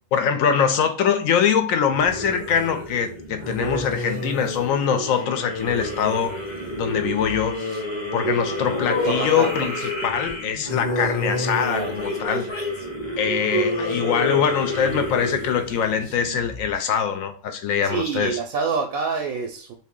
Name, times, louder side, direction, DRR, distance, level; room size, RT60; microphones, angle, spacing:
voice 1, 0.1-6.4 6.8-7.6 8.1-12.5 13.2-18.4, left 7 dB, 75° left, 1.0 m, -23 dB
sound 1, 1.9-16.8, left 1 dB, 25° left, 0.7 m, -29 dB
voice 2, 9.1-9.7 11.7-11.9 17.8-19.7, right 5 dB, 90° right, 1.0 m, -27 dB
2.7 x 2.6 x 3.6 m
omnidirectional pair, 1.4 m